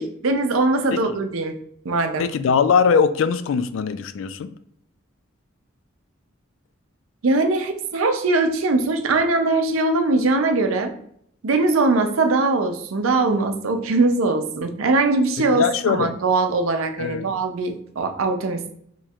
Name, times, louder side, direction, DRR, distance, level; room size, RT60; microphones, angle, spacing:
voice 1, 0.0-1.6 1.8-2.3 7.2-10.9 11.4-18.7, right 3 dB, 90° right, 6 dB, 0.5 m, -21 dB
voice 2, 2.2-4.5 15.5-16.1 17.0-17.3, left 6 dB, 75° left, 12 dB, 0.3 m, -21 dB
3.0 x 2.4 x 4.2 m, 0.69 s
head